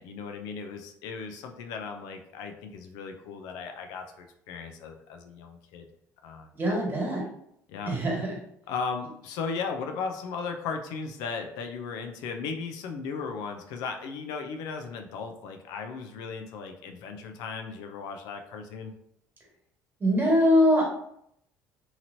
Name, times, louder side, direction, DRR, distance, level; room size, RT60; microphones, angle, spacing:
voice 1, 0.0-5.9 6.2-6.8 7.7-8.0 8.7-18.9, left 5 dB, 80° left, 5 dB, 0.4 m, -36 dB
voice 2, 6.5-7.2 7.9-8.3 20.0-20.8, equal, 30° right, -2 dB, 1.5 m, -22 dB
2.9 x 2.8 x 2.7 m, 0.72 s
supercardioid pair, 80°, 6 cm